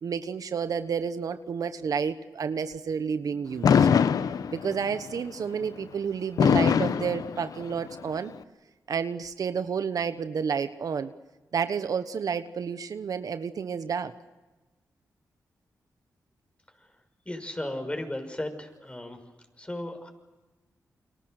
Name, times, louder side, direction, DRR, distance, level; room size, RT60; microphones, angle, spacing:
voice 1, 0.0-3.9 4.5-8.3 8.9-11.1 11.5-14.1, right 6 dB, 70° right, 11 dB, 1.2 m, -30 dB
Fireworks, 3.6-4.9 6.4-7.9, left 7 dB, 75° left, 0.9 m, -22 dB
voice 2, 17.3-19.2 19.6-20.1, left 1 dB, 20° left, 6 dB, 6.3 m, -35 dB
29.5 x 24.0 x 6.6 m, 1.1 s
cardioid pair, 55°, 6 cm